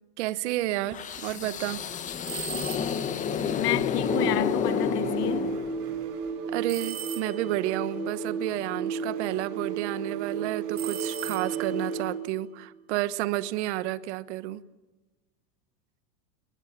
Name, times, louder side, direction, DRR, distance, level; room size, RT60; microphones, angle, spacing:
voice 1, 0.2-1.9 2.3-2.5 6.5-14.6, right 16 dB, 45° right, 1.2 m, -31 dB
sound 1, 0.9-6.0, left 7 dB, 15° left, 1.2 m, -30 dB
sound 2, 2.2-3.2 6.7-7.7 10.7-11.9, right 10 dB, 20° right, 2.8 m, -39 dB
voice 2, 3.4-5.6, left 16 dB, 80° left, 0.9 m, -30 dB
sound 3, 3.9-12.3, right 5 dB, 75° right, 7.1 m, -33 dB
28.5 x 20.5 x 7.5 m
supercardioid pair, 170°, 47 cm